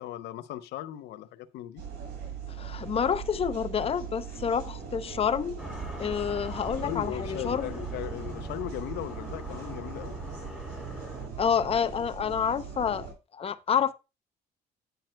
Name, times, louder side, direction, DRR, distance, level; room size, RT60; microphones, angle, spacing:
voice 1, 0.0-1.8 6.5-10.2, left 13 dB, 80° left, 0.7 m, -38 dB
sound 1, 1.8-13.1, right 6 dB, 85° right, 4.8 m, -40 dB
voice 2, 2.5-5.6 6.0-7.8 11.4-13.1 13.3-13.9, left 7 dB, 35° left, 0.6 m, -28 dB
sound 2, 5.6-11.3, right 1 dB, ahead, 2.5 m, -40 dB
9.2 x 8.8 x 2.2 m
cardioid pair, 110°, 17 cm